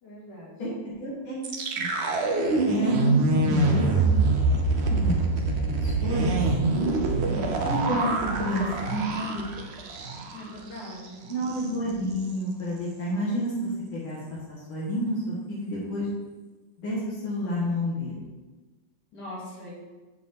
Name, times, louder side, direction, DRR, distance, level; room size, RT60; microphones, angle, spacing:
voice 1, 0.0-0.5 10.3-11.3 19.1-19.7, left 1 dB, 55° left, -7 dB, 3.0 m, -41 dB
voice 2, 0.6-1.9 2.6-4.2 4.7-6.4 6.7-6.9 7.6-8.1 8.4-9.5 11.3-16.1 16.8-18.2, equal, 75° left, -8 dB, 2.5 m, -30 dB
sound 1, 1.4-10.5 10.8-10.9 11.3-11.7, right 3 dB, 80° right, 0.5 m, -25 dB
7.3 x 3.7 x 6.0 m, 1.3 s
omnidirectional pair, 2.3 m